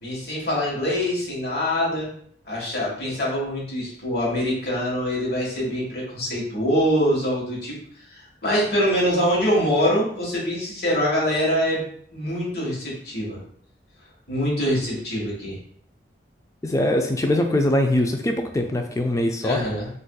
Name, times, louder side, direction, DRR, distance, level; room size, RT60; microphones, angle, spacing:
voice 1, 0.0-2.1 2.4-7.8 8.1-11.8 12.1-13.4 14.3-15.6 19.4-19.9, equal, 60° left, -5 dB, 1.3 m, -24 dB
voice 2, 16.6-19.6, left 1 dB, 15° left, 4 dB, 0.3 m, -22 dB
4.1 x 2.5 x 2.2 m, 0.62 s
head